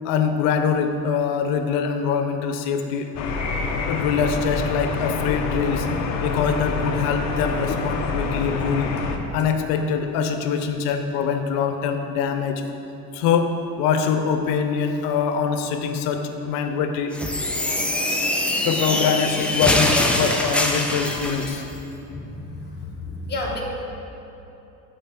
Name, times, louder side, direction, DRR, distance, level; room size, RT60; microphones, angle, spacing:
voice 1, 0.0-3.1 3.9-5.9 6.2-8.9 9.3-12.6 13.1-17.1 18.6-21.6, left 6 dB, 85° left, 6 dB, 0.8 m, -23 dB
sound 1, 3.1-9.2, left 4 dB, 50° left, 0.8 m, -27 dB
sound 2, 17.1-21.6, left 1 dB, 5° left, 0.4 m, -23 dB
voice 2, 22.0-23.6, left 2 dB, 30° left, -2 dB, 1.3 m, -32 dB
8.3 x 4.0 x 5.9 m, 3.0 s
cardioid pair, 135°, 37 cm